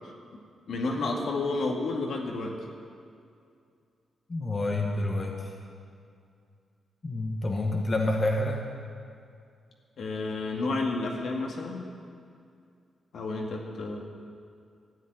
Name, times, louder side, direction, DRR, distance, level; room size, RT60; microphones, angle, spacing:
voice 1, 0.7-2.6 10.0-11.8 13.1-14.0, left 3 dB, 70° left, 0 dB, 2.1 m, -31 dB
voice 2, 4.3-5.5 7.0-8.6, left 2 dB, 30° left, 0 dB, 1.5 m, -28 dB
13.0 x 7.6 x 9.9 m, 2.3 s
cardioid pair, 110°, 0 cm